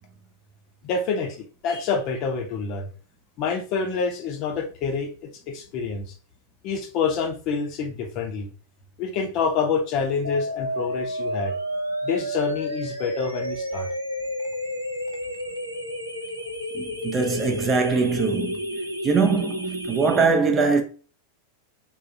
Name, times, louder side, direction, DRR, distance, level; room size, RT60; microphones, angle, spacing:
voice 1, 0.8-2.9 3.4-5.1 5.5-6.0 6.6-8.5 9.0-11.5 12.0-13.9, left 5 dB, 40° left, 0.6 m, -27 dB
sound 1, 10.2-20.2, equal, 85° right, 0.5 m, -31 dB
voice 2, 16.7-18.6 19.0-20.8, right 4 dB, 25° right, 0.5 m, -22 dB
3.5 x 2.5 x 2.7 m
figure-of-eight pair, 90°, 0 cm